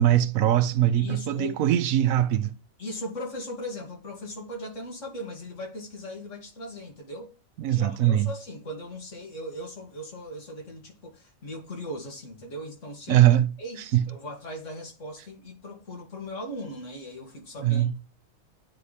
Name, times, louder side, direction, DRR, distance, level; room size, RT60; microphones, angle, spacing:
voice 1, 0.0-2.5 7.6-8.3 13.1-13.5 13.9-14.0 17.6-17.9, right 12 dB, 85° right, 1.1 m, -21 dB
voice 2, 0.9-1.6 2.8-7.4 7.7-13.3 13.6-18.0, left 1 dB, 65° left, 2.4 m, -38 dB
9.2 x 3.2 x 4.1 m
omnidirectional pair, 1.4 m